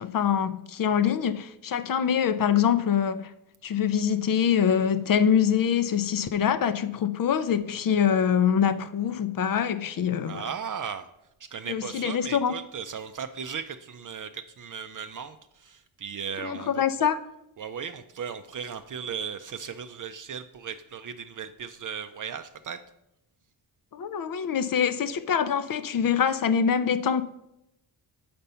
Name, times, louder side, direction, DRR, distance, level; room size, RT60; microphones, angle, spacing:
voice 1, 0.0-3.3 3.6-10.4 11.7-12.5 16.4-17.2 23.9-27.2, left 8 dB, 55° left, 0.5 m, -24 dB
voice 2, 10.2-11.1 11.4-17.1 17.6-22.8, right 7 dB, 50° right, 0.5 m, -37 dB
6.8 x 5.1 x 5.5 m
wide cardioid pair, 115°, 42 cm